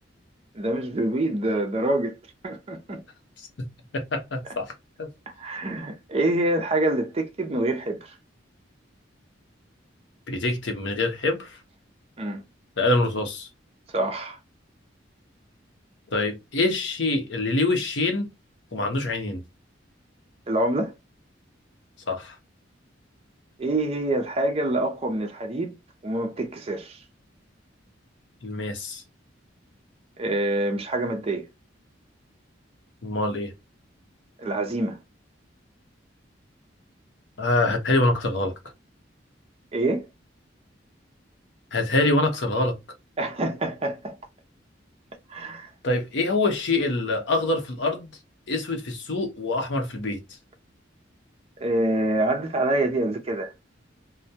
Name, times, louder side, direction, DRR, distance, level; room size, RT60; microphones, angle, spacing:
voice 1, 0.5-2.2 2.4-3.0 5.4-8.1 12.2-12.4 13.9-14.4 20.5-20.9 23.6-25.7 26.0-27.0 30.2-31.5 34.4-35.0 39.7-40.1 43.2-44.2 45.3-45.7 51.6-53.5, right 1 dB, 35° right, 0.5 m, -26 dB
voice 2, 3.9-4.7 5.0-5.1 10.3-11.6 12.8-13.5 16.1-18.3 18.7-19.4 22.1-22.3 28.4-29.0 33.0-33.5 37.4-38.5 41.7-42.8 45.8-48.1 48.5-50.2, left 2 dB, 65° left, 0.7 m, -25 dB
2.2 x 2.1 x 2.7 m
head